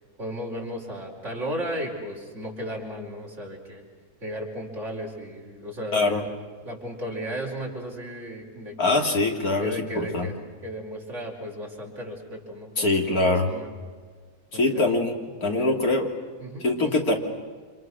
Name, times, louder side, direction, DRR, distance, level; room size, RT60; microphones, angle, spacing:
voice 1, 0.2-3.8 4.2-6.3 6.6-9.2 9.6-10.4 10.6-13.7 14.5-14.9 15.6-15.8 16.4-17.0, equal, 50° right, -1 dB, 5.3 m, -35 dB
voice 2, 5.9-6.2 8.8-10.3 12.8-13.5 14.5-15.1 15.4-16.1 16.6-17.1, left 2 dB, 70° left, 2 dB, 3.5 m, -23 dB
29.5 x 27.0 x 6.4 m, 1.5 s
omnidirectional pair, 1.6 m